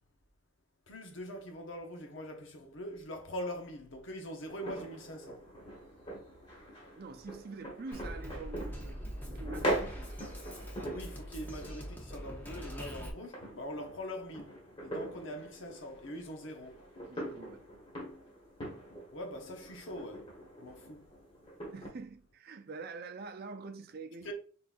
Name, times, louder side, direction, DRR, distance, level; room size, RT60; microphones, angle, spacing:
voice 1, 0.9-5.5 10.9-16.9 19.1-21.1 24.2-24.3, equal, 70° left, 0.9 m, -43 dB
sound 1, 4.5-21.9, right 1 dB, 25° left, 1.4 m, -42 dB
voice 2, 7.0-9.0 9.3-10.4 17.0-17.6 21.7-24.3, right 4 dB, 50° right, 0.4 m, -46 dB
Drum kit, 7.9-13.1, equal, 10° left, 0.7 m, -43 dB
3.8 x 3.7 x 2.5 m
head